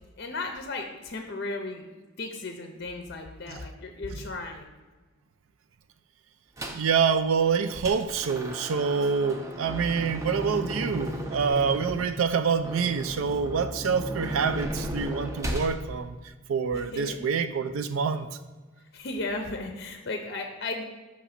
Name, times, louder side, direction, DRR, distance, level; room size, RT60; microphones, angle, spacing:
voice 1, 0.2-1.9 2.2-4.7 16.7-17.2 18.9-20.8, left 2 dB, 50° left, 4 dB, 0.5 m, -35 dB
sound 1, 6.6-6.9 7.4-15.7, equal, 15° right, 0.5 m, -35 dB
voice 2, 6.7-16.2 16.5-18.3, right 6 dB, 75° right, 10 dB, 0.4 m, -26 dB
6.0 x 3.0 x 5.6 m, 1.3 s
head